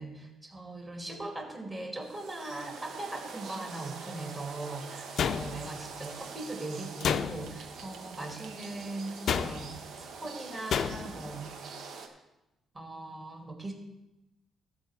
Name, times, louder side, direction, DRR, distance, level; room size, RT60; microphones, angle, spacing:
voice 1, 0.0-11.5 12.1-12.2 12.7-13.7, right 2 dB, 25° right, 2 dB, 2.3 m, -40 dB
sound 1, 2.0-12.1, right 5 dB, 75° right, 1.2 m, -45 dB
sound 2, 5.2-5.9 7.0-7.7 9.3-9.8 10.7-11.2, left 7 dB, 60° left, 0.5 m, -30 dB
12.5 x 4.5 x 7.8 m, 0.95 s
cardioid pair, 90°, 0 cm